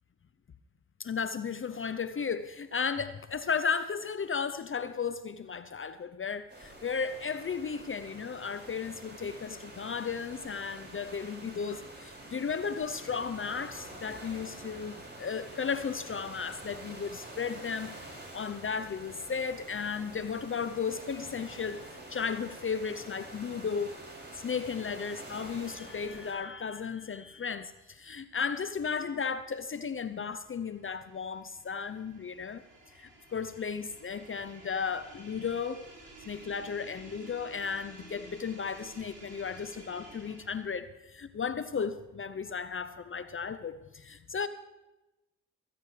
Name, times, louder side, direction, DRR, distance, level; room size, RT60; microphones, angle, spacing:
voice 1, 1.0-18.0 18.3-24.0 24.3-32.6 32.9-35.9 36.2-44.5, left 6 dB, 35° left, 12 dB, 0.7 m, -35 dB
Waves Up Close, 6.5-26.3, right 1 dB, 30° right, 5.6 m, -47 dB
sound 1, 29.3-40.8, right 3 dB, 55° right, 5.6 m, -54 dB
16.5 x 15.0 x 3.3 m, 1.0 s
supercardioid pair, 50°, 36 cm